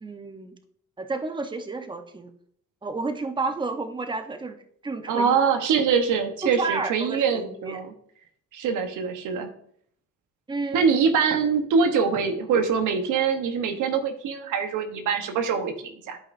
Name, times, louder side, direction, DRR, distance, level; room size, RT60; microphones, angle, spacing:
voice 1, 0.0-0.6 1.0-2.3 2.8-4.6 4.8-5.4 6.4-7.8 10.5-10.9, right 3 dB, 15° right, 7 dB, 0.9 m, -31 dB
voice 2, 5.1-7.9 8.5-9.5 10.7-16.2, right 6 dB, 85° right, 7 dB, 1.1 m, -24 dB
12.0 x 5.2 x 2.6 m, 0.64 s
cardioid pair, 90°, 30 cm